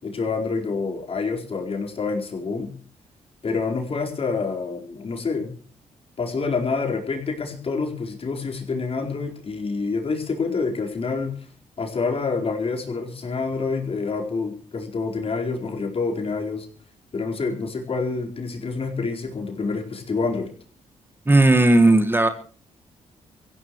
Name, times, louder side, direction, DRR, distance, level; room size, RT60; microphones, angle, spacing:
voice 1, 0.0-2.7 3.4-5.6 6.2-11.4 11.8-16.7 17.1-20.5, left 4 dB, 50° left, 2 dB, 4.5 m, -27 dB
voice 2, 21.2-22.3, right 2 dB, 15° right, 8 dB, 1.7 m, -15 dB
24.5 x 16.0 x 3.1 m, 0.41 s
cardioid pair, 80°, 13 cm